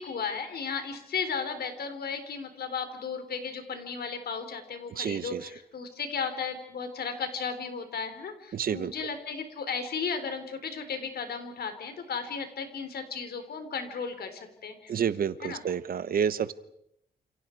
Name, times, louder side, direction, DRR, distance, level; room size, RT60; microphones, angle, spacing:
voice 1, 0.0-14.9 15.4-15.6, left 5 dB, 65° left, 8 dB, 3.9 m, -35 dB
voice 2, 5.0-5.5 8.5-8.9 14.9-16.5, right 8 dB, 60° right, 15 dB, 1.0 m, -29 dB
29.5 x 28.5 x 4.7 m, 0.76 s
wide cardioid pair, 170°, 17 cm